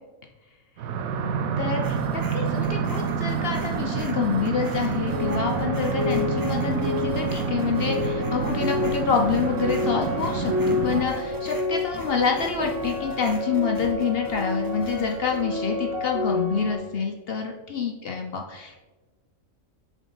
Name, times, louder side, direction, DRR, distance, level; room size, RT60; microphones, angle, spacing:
sound 1, 0.8-11.1, right 6 dB, 90° right, 1.1 m, -28 dB
voice 1, 1.6-18.9, left 6 dB, 60° left, 2 dB, 0.7 m, -27 dB
sound 2, 1.8-15.4, right 1 dB, 25° right, 0.4 m, -42 dB
sound 3, 5.1-16.8, left 3 dB, 70° right, 1.6 m, -30 dB
7.1 x 3.6 x 3.9 m, 1.3 s
omnidirectional pair, 1.4 m